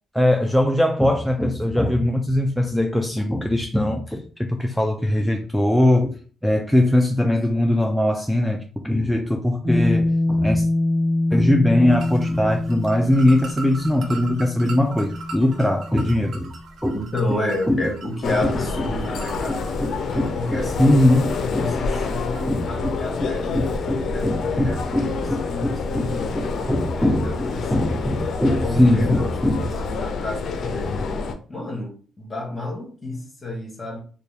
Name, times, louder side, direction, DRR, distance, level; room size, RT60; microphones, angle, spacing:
voice 1, 0.1-10.7 11.3-16.5 16.8-17.0 17.7-17.9 18.4-18.5 18.8-18.9 19.5-21.8 22.1-22.2 22.5-29.7, left 1 dB, ahead, 0.3 m, -21 dB
sound 1, 9.6-16.4, left 2 dB, 15° right, 0.7 m, -25 dB
sound 2, 11.9-22.4, right 3 dB, 60° right, 0.6 m, -41 dB
voice 2, 16.9-19.6 20.3-20.9 21.6-27.9 28.6-29.3 29.6-31.0 31.5-34.0, left 2 dB, 25° left, 1.0 m, -30 dB
sound 3, 18.2-31.3, left 4 dB, 65° left, 0.4 m, -27 dB
2.6 x 2.2 x 3.2 m
cardioid pair, 90°, 0 cm